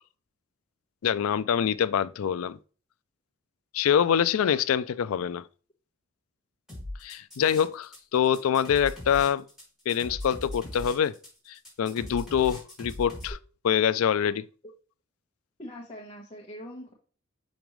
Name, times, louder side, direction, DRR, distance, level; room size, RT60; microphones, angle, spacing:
voice 1, 1.0-2.6 3.7-5.4 7.0-9.4 9.9-11.1 11.5-13.4 13.6-14.5, left 8 dB, 85° left, 0.4 m, -25 dB
sound 1, 6.7-8.0 8.2-13.3, left 1 dB, ahead, 3.2 m, -39 dB
voice 2, 15.6-16.9, equal, 25° left, 1.0 m, -42 dB
6.0 x 5.1 x 3.1 m
head